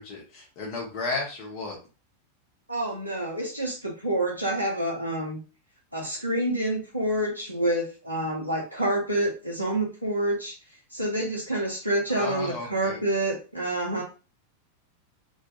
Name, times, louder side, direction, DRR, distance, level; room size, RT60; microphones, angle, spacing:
voice 1, 0.0-1.8 12.1-13.0, left 3 dB, 40° left, -2 dB, 0.7 m, -33 dB
voice 2, 2.7-5.4 5.9-10.6 10.9-14.0, right 1 dB, 85° left, -3 dB, 0.5 m, -28 dB
2.2 x 2.1 x 2.8 m, 0.35 s
figure-of-eight pair, 90°, 0 cm